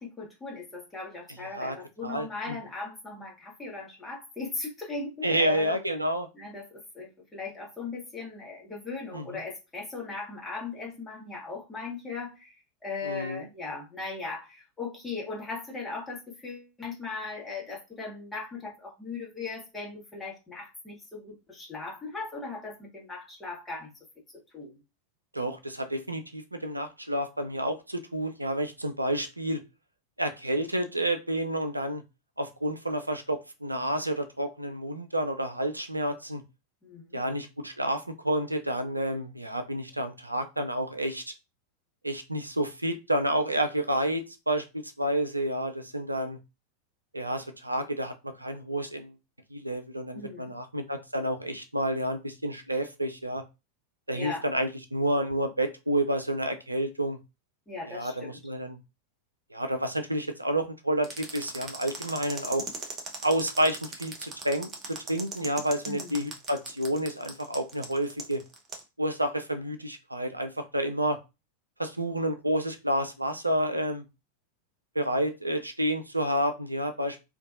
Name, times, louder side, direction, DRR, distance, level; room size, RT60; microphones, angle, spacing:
voice 1, 0.0-5.7 6.3-12.5 12.8-23.9 24.5-24.7 36.8-37.2 50.1-50.5 54.1-54.4 57.7-58.4 65.9-66.1, left 3 dB, 10° left, -3 dB, 1.2 m, -38 dB
voice 2, 2.0-2.6 5.2-6.3 9.1-9.4 13.0-13.5 25.3-29.6 30.2-32.0 32.4-36.4 37.1-41.3 42.0-44.7 45.0-46.4 47.1-49.1 49.5-53.4 54.1-57.2 57.9-58.8 59.5-62.6 63.2-68.4 69.0-71.2 71.8-74.0 75.0-77.2, right 1 dB, 85° right, 7 dB, 0.3 m, -29 dB
sound 1, 61.0-68.8, right 4 dB, 25° right, 0.7 m, -39 dB
2.5 x 2.4 x 2.4 m, 0.26 s
figure-of-eight pair, 90°, 0 cm